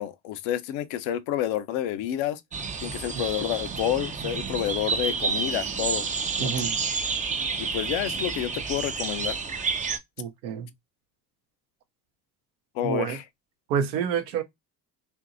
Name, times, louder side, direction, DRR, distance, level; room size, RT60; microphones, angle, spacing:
voice 1, 0.0-2.4 2.8-6.1 6.4-6.5 7.6-9.4 12.7-13.2, left 11 dB, 65° left, 0.6 m, -29 dB
sound 1, 2.5-10.0, right 5 dB, 20° right, 0.3 m, -29 dB
voice 2, 6.4-6.7 10.2-10.7 12.8-13.2 13.7-14.4, right 8 dB, 85° right, 0.7 m, -28 dB
2.8 x 2.6 x 2.5 m
hypercardioid pair, 55°, 50 cm